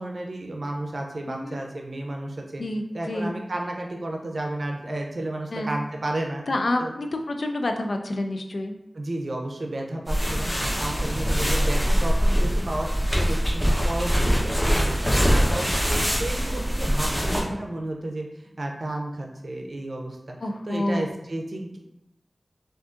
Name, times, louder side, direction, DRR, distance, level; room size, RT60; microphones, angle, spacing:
voice 1, 0.0-2.6 2.9-6.4 6.8-6.9 8.9-12.9 13.1-20.4 20.7-21.8, right 1 dB, 70° right, 1 dB, 0.5 m, -32 dB
voice 2, 1.3-1.6 2.6-3.3 5.5-5.7 6.5-8.7 20.4-21.1, left 1 dB, 85° left, 4 dB, 0.3 m, -28 dB
sound 1, 10.1-17.4, equal, 15° left, 0.8 m, -23 dB
3.5 x 2.4 x 2.5 m, 0.86 s
wide cardioid pair, 45°, 0 cm